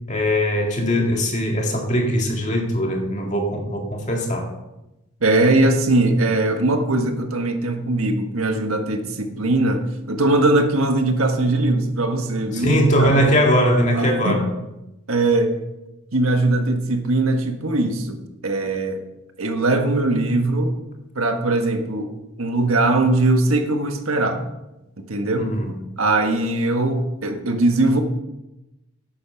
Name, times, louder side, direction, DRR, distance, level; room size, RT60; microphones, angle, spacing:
voice 1, 0.1-4.5 12.5-14.5 25.4-25.7, equal, 35° left, 1 dB, 2.1 m, -20 dB
voice 2, 5.2-13.1 13.9-14.4 15.1-15.6 16.1-19.0 19.4-20.7 21.1-22.1 22.4-24.4 25.0-25.5 26.0-28.0, right 2 dB, 90° right, 5 dB, 1.5 m, -20 dB
10.5 x 9.0 x 5.8 m, 0.95 s
head